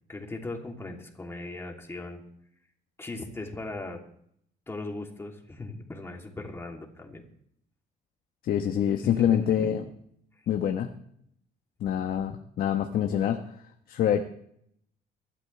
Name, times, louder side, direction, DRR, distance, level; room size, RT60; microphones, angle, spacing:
voice 1, 0.1-2.2 3.0-4.0 4.7-7.2 9.0-9.7, left 2 dB, 15° left, 1 dB, 3.1 m, -38 dB
voice 2, 8.4-9.8 10.5-10.9 11.8-13.4 13.9-14.3, left 9 dB, 60° left, 5 dB, 1.3 m, -25 dB
23.5 x 12.5 x 3.4 m, 0.68 s
cardioid pair, 110°, 17 cm